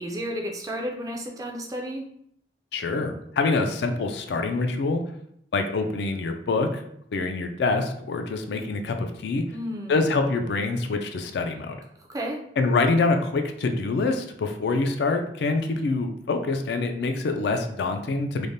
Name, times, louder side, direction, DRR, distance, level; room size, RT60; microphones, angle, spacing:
voice 1, 0.0-2.1 9.5-10.0 12.1-12.4, equal, 20° right, 0 dB, 0.3 m, -32 dB
voice 2, 2.7-5.0 5.5-6.8 7.1-9.5 9.9-11.8 12.6-18.5, left 3 dB, 65° left, 6 dB, 0.3 m, -25 dB
3.2 x 2.1 x 2.6 m, 0.70 s
head